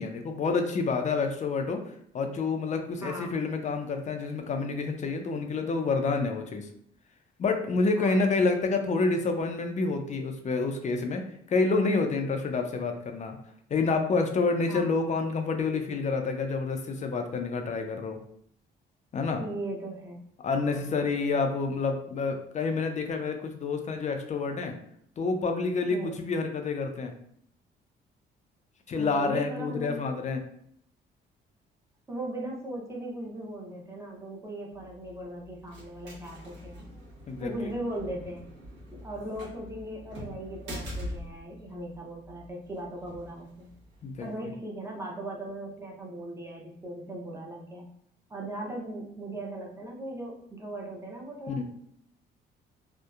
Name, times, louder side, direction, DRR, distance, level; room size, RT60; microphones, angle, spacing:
voice 1, 0.0-1.8 2.1-6.7 7.4-11.2 11.5-13.3 13.7-18.2 19.1-19.4 20.4-24.7 25.2-27.1 28.9-30.4 37.3-37.5 44.0-44.3 51.5-51.6, left 4 dB, 40° left, 5 dB, 0.4 m, -28 dB
voice 2, 3.0-3.4 8.0-8.3 14.7-14.9 19.4-20.2 20.5-21.0 25.9-26.2 28.9-30.0 32.1-36.8 37.4-38.5 38.9-43.7 44.2-47.9 48.3-51.6, right 1 dB, 15° right, -2 dB, 0.7 m, -38 dB
sound 1, 34.7-44.3, equal, 80° right, 1.1 m, -44 dB
2.7 x 2.1 x 2.3 m, 0.67 s
cardioid pair, 90°, 20 cm